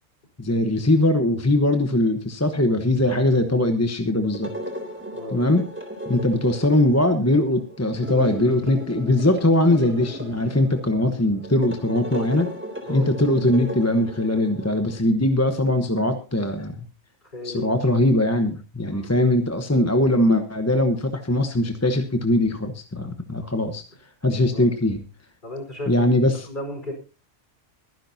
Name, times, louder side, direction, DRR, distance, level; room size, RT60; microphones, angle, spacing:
voice 1, 0.4-4.5 5.3-5.7 6.1-12.5 12.9-16.7 17.4-23.8 24.2-25.0 25.9-26.5, left 1 dB, 15° left, 7 dB, 1.0 m, -21 dB
sound 1, 4.2-15.0, equal, 10° right, 3.3 m, -36 dB
voice 2, 17.3-17.8 18.9-19.1 24.5-24.6 25.4-26.1 26.4-26.9, left 1 dB, 40° left, 3 dB, 4.8 m, -34 dB
22.5 x 10.5 x 2.8 m, 0.32 s
omnidirectional pair, 1.2 m